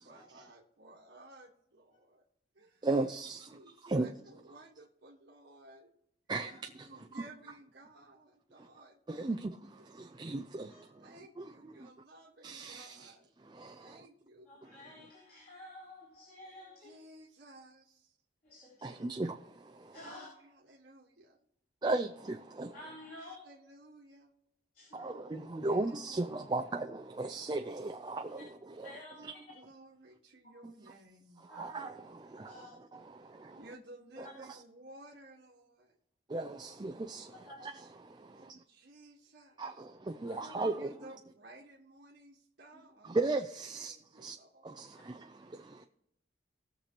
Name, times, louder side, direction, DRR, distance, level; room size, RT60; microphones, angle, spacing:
voice 1, 0.0-2.2 2.5-3.1 3.5-5.9 6.5-9.0 9.7-9.9 10.6-13.3 13.8-14.5 16.8-18.2 20.0-21.4 23.2-24.3 25.6-26.0 26.5-26.8 29.1-31.4 33.5-36.0 38.3-39.7 40.7-43.1 43.7-44.8, right 1 dB, 65° right, 1.5 m, -56 dB
voice 2, 2.8-3.5 3.8-4.1 6.3-6.9 7.1-7.2 9.1-11.9 12.4-13.1 13.5-14.0 18.8-20.0 21.8-22.8 24.9-28.9 29.2-29.3 30.6-30.7 31.5-33.6 34.2-34.3 36.3-38.6 39.6-40.9 43.0-44.4 44.6-45.8, right 2 dB, 25° right, 0.4 m, -37 dB
voice 3, 14.5-17.0 18.4-19.1 19.9-20.3 22.7-23.4 24.7-25.2 28.8-29.1 31.5-31.8 32.4-32.7 37.4-37.6 40.2-40.6, left 1 dB, 55° left, 3.9 m, -51 dB
19.5 x 6.8 x 3.0 m
head